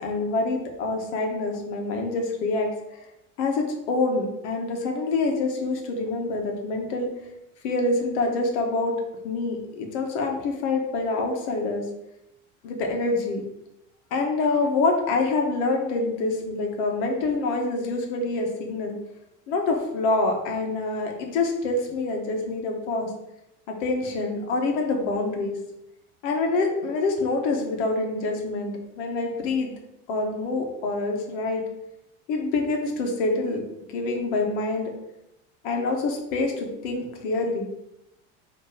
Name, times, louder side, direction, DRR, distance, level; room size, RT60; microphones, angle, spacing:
voice 1, 0.0-3.0 3.4-7.1 7.6-8.9 9.2-11.8 12.6-13.4 14.1-19.0 19.5-23.1 23.7-25.5 26.2-29.7 30.1-31.6 32.3-33.6 33.9-34.9 35.6-37.7, left 3 dB, 80° left, 2 dB, 1.5 m, -26 dB
5.7 x 3.3 x 5.0 m, 0.86 s
cardioid pair, 170°, 34 cm